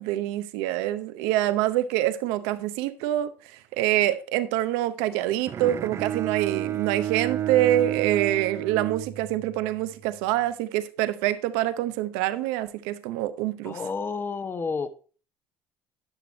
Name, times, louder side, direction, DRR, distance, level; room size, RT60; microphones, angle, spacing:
voice 1, 0.0-3.3 3.7-13.8, right 14 dB, 85° right, 0.7 m, -26 dB
Bowed string instrument, 5.5-9.7, right 11 dB, 40° right, 0.4 m, -31 dB
voice 2, 13.6-14.9, left 5 dB, 30° left, 0.9 m, -30 dB
10.5 x 6.1 x 4.0 m
supercardioid pair, 90°, 7 cm